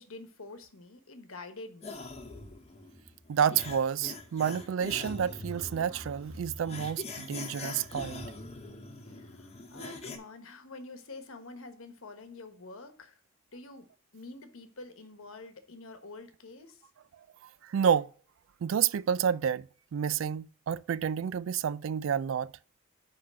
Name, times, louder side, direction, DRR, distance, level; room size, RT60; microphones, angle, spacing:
voice 1, 0.0-2.0 9.1-13.2 13.5-16.8, left 3 dB, 80° left, 1.2 m, -47 dB
sound 1, 1.8-10.2, left 2 dB, 30° left, 1.0 m, -43 dB
voice 2, 3.3-8.3 17.6-18.1 18.6-22.5, right 8 dB, 70° right, 0.3 m, -29 dB
5.8 x 5.0 x 6.2 m
head